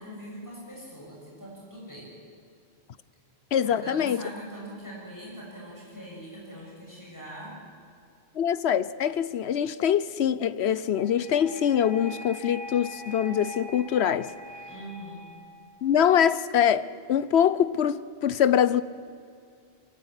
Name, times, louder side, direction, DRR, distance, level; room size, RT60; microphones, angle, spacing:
voice 1, 0.0-2.1 3.6-7.5 14.7-15.3, equal, 15° left, 6.8 m, -42 dB
voice 2, 3.5-4.2 8.4-14.3 15.8-18.8, left 9 dB, 85° left, 1.0 m, -24 dB
sound 1, 10.9-15.9, left 1 dB, 25° right, 2.2 m, -43 dB
23.0 x 15.5 x 9.7 m
omnidirectional pair, 1.1 m